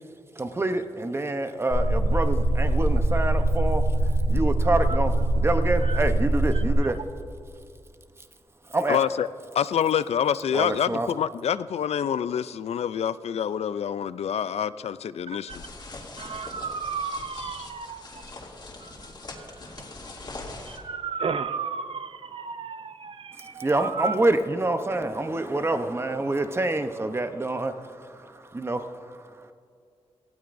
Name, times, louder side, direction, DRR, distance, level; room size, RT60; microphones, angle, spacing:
voice 1, 0.3-7.0 8.6-9.0 10.5-11.1 23.3-29.5, right 2 dB, 25° right, 8 dB, 0.8 m, -27 dB
sound 1, 1.7-6.7, right 1 dB, 25° left, 2.5 m, -23 dB
voice 2, 8.9-9.3 9.5-15.6 17.4-17.7, left 8 dB, 75° left, 15 dB, 0.4 m, -27 dB
sound 2, 15.5-20.8, left 2 dB, 45° left, 2.5 m, -42 dB
voice 3, 16.2-18.0 20.8-23.6 24.0-24.1, right 5 dB, 55° right, 12 dB, 0.5 m, -33 dB
18.5 x 15.5 x 2.6 m, 2.4 s
wide cardioid pair, 120°, 11 cm